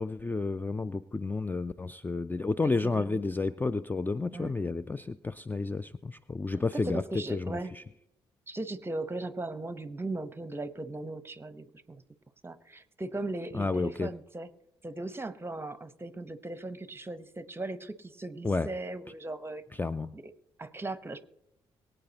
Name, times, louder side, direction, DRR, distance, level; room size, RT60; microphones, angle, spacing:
voice 1, 0.0-7.0 7.3-7.8 13.5-14.1 18.4-18.7 19.8-20.1, left 3 dB, 15° left, 16 dB, 0.4 m, -31 dB
voice 2, 2.8-3.2 4.3-4.5 6.7-7.7 8.5-12.0 12.4-14.5 14.8-19.6 20.1-20.2 20.6-21.2, right 2 dB, 15° right, 13 dB, 1.0 m, -38 dB
23.0 x 8.8 x 2.9 m, 0.85 s
hypercardioid pair, 45°, 13 cm